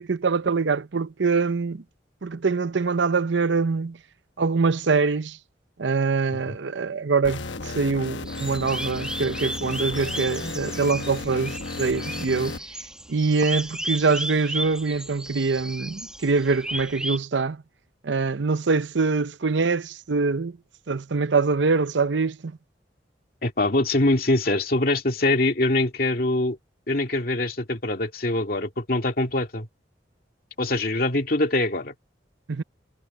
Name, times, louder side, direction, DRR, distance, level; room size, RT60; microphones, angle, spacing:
voice 1, 0.0-1.8 2.2-4.0 4.4-5.4 5.8-12.6 13.1-17.6 18.0-20.6 20.9-22.6 32.5-32.6, right 4 dB, 80° right, 0.7 m, -24 dB
sound 1, 7.2-12.6, left 3 dB, 90° left, 1.2 m, -34 dB
sound 2, 8.3-17.2, right 1 dB, 5° right, 1.3 m, -34 dB
voice 2, 23.4-26.6 26.9-29.7 30.6-31.9, left 2 dB, 55° left, 2.4 m, -23 dB
head